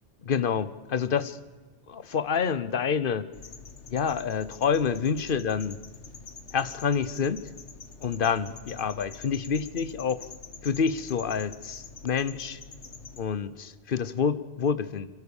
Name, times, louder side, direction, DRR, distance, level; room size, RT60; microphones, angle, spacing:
voice 1, 0.2-1.4 1.9-3.3 3.9-5.8 6.5-7.5 8.0-10.2 10.6-12.6 13.2-15.1, left 6 dB, 50° left, 16 dB, 0.9 m, -28 dB
sound 1, 3.3-13.3, left 4 dB, 75° left, 1.6 m, -46 dB
29.0 x 13.0 x 7.1 m, 1.3 s
omnidirectional pair, 1.2 m